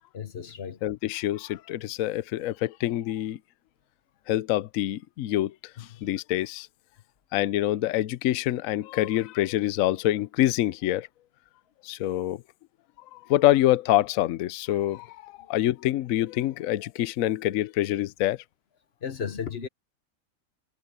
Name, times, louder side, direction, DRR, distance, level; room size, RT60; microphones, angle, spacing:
voice 1, 0.1-0.8 19.0-19.7, left 7 dB, 40° left, 1.1 m, -34 dB
voice 2, 0.8-3.4 4.3-6.7 7.3-11.1 11.8-12.4 13.1-18.4, left 14 dB, 65° left, 0.9 m, -26 dB
omnidirectional pair, 1.8 m